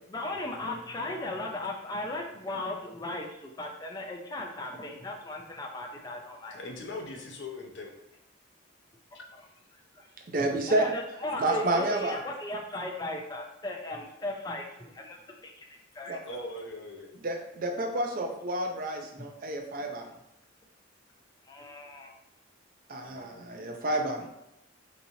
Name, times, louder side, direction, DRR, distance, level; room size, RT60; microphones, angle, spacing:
voice 1, 0.1-6.6 10.0-10.1 10.4-15.7 15.9-16.2 21.5-22.1, left 1 dB, 20° left, 1 dB, 0.4 m, -37 dB
voice 2, 6.5-7.9 16.2-17.1 23.0-23.5, left 2 dB, 65° left, 2 dB, 0.6 m, -41 dB
voice 3, 10.3-10.9 11.4-12.1 16.1-16.2 17.2-20.1 22.9-24.3, right 1 dB, 45° right, 3 dB, 0.4 m, -30 dB
4.0 x 2.9 x 2.7 m, 0.85 s
head